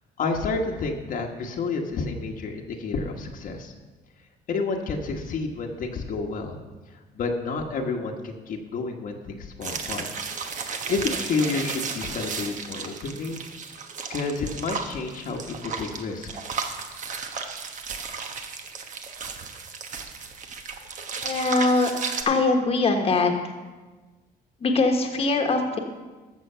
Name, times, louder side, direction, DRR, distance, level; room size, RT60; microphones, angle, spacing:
voice 1, 0.2-3.7 4.5-6.6 7.1-10.1 10.9-13.4 14.1-16.3, left 4 dB, 55° left, 1 dB, 1.3 m, -30 dB
sound 1, 9.6-22.2, right 5 dB, 50° right, 1.2 m, -34 dB
voice 2, 21.2-21.9 22.2-23.3 24.6-25.8, left 3 dB, 35° left, 3 dB, 1.3 m, -22 dB
13.5 x 6.8 x 5.6 m, 1.3 s
cardioid pair, 110°, 17 cm